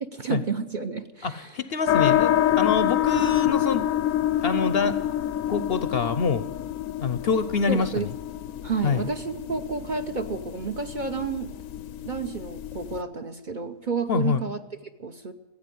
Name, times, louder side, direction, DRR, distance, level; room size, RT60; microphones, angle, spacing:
voice 1, 0.0-1.5 7.7-8.1 8.6-11.5 12.0-15.3, right 5 dB, 40° right, 6 dB, 0.8 m, -31 dB
voice 2, 1.2-3.9 4.4-5.0 5.5-6.5 7.0-8.1 8.8-9.1 14.1-14.4, left 5 dB, 55° left, 13 dB, 0.8 m, -26 dB
sound 1, 1.9-13.0, left 11 dB, 75° left, 1.0 m, -27 dB
15.5 x 8.6 x 10.0 m, 1.1 s
omnidirectional pair, 1.4 m